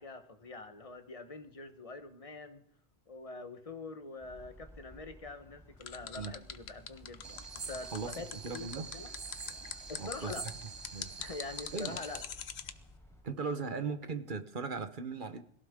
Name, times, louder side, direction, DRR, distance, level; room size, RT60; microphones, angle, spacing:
voice 1, 0.0-2.7 3.1-7.4 7.7-8.3 8.5-9.1 9.9-10.5 11.2-12.2, left 3 dB, 35° left, 8 dB, 1.2 m, -45 dB
sound 1, 4.2-13.2, equal, 5° left, 4.5 m, -56 dB
sound 2, 5.8-12.7, left 8 dB, 85° left, 1.1 m, -42 dB
sound 3, 7.2-12.2, right 5 dB, 30° right, 0.6 m, -46 dB
voice 2, 7.9-8.9 10.0-10.4 10.9-11.1 11.7-12.0 13.2-15.4, right 4 dB, 55° right, 9 dB, 1.2 m, -38 dB
21.5 x 16.0 x 3.7 m, 0.74 s
omnidirectional pair, 1.0 m